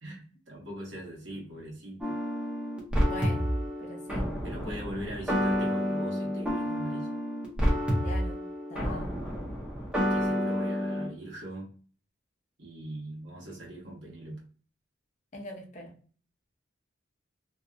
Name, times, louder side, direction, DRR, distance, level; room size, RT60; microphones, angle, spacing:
voice 1, 0.0-2.2 4.4-7.1 10.1-11.7 12.6-14.4, right 1 dB, 75° right, -3 dB, 1.2 m, -41 dB
sound 1, 2.0-11.1, equal, 5° right, 0.7 m, -29 dB
voice 2, 3.0-4.3 8.0-8.4 8.7-9.4 15.3-15.9, left 2 dB, 40° left, 0 dB, 0.6 m, -42 dB
2.7 x 2.1 x 2.4 m, 0.42 s
head